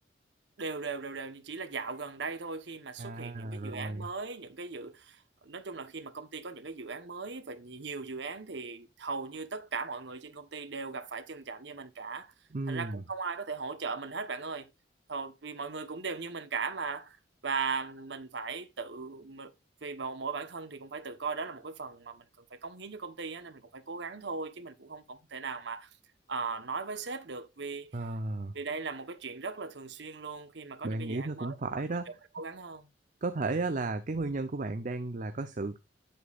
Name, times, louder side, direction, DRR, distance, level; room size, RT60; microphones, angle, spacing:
voice 1, 0.6-12.3 12.7-14.7 15.1-17.2 17.4-19.5 19.8-22.2 22.5-25.9 26.3-27.9 28.5-32.9, right 4 dB, 70° right, 1.1 m, -38 dB
voice 2, 3.0-4.1 12.5-13.0 27.9-28.6 30.8-32.1 33.2-35.8, right 3 dB, 45° right, 0.7 m, -34 dB
8.4 x 8.0 x 2.4 m
head